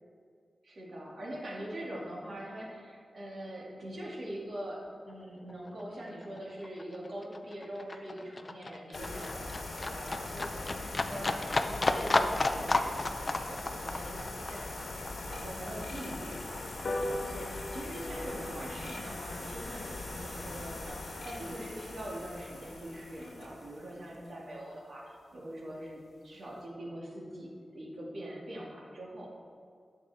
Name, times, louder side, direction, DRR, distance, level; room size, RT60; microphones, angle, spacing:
voice 1, 0.6-29.3, right 1 dB, 60° right, -4 dB, 2.2 m, -43 dB
Livestock farm animals working animals, 5.1-5.2 5.5-16.5 16.8-17.8 18.1-18.2, left 2 dB, 30° left, 0.4 m, -33 dB
sound 1, 8.9-24.3, left 2 dB, 70° left, 1.3 m, -41 dB
sound 2, 16.8-23.6 24.0-24.1 24.4-24.5 24.8-24.9 25.2-25.3 25.6-25.9 26.3-26.4, left 1 dB, 50° left, 1.0 m, -43 dB
11.5 x 6.9 x 3.5 m, 2.3 s
wide cardioid pair, 150°, 0 cm